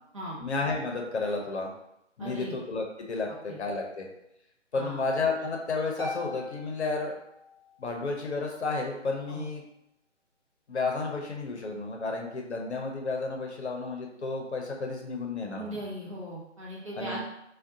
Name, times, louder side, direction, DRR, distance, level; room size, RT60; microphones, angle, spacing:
voice 1, 0.4-1.7 2.2-4.1 4.7-7.1 7.8-9.6 10.7-15.8 17.0-17.2, left 3 dB, 65° left, 1 dB, 0.8 m, -32 dB
voice 2, 2.2-2.6 3.3-3.6 4.7-5.0 9.3-9.5 15.5-17.2, right 1 dB, 25° right, -7 dB, 0.6 m, -38 dB
Harp, 6.0-7.9, left 2 dB, 20° left, 0.5 m, -41 dB
3.4 x 2.4 x 2.6 m, 0.81 s
figure-of-eight pair, 150°, 37 cm